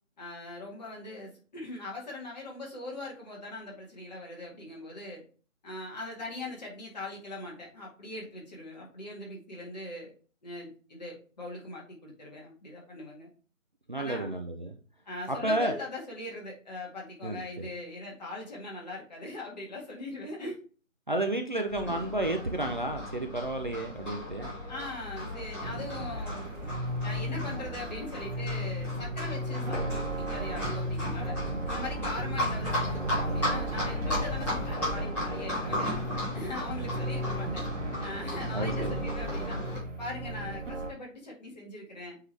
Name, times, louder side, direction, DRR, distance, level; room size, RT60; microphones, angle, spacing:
voice 1, 0.2-5.2 5.6-10.1 10.4-13.3 14.0-14.3 15.1-20.6 24.7-26.5 27.0-31.4 31.7-36.0 36.3-37.7 38.0-39.6 40.0-42.2, left 2 dB, 30° left, -2 dB, 2.0 m, -41 dB
voice 2, 13.9-14.7 15.3-15.7 17.2-17.7 21.1-24.5 38.5-38.9, right 1 dB, 35° right, 3 dB, 0.5 m, -31 dB
Livestock farm animals working animals, 21.7-39.8, left 1 dB, 5° left, 1.8 m, -35 dB
sound 1, 25.6-40.9, right 1 dB, 65° right, 1.5 m, -35 dB
8.0 x 3.8 x 3.3 m, 0.39 s
figure-of-eight pair, 160°, 40 cm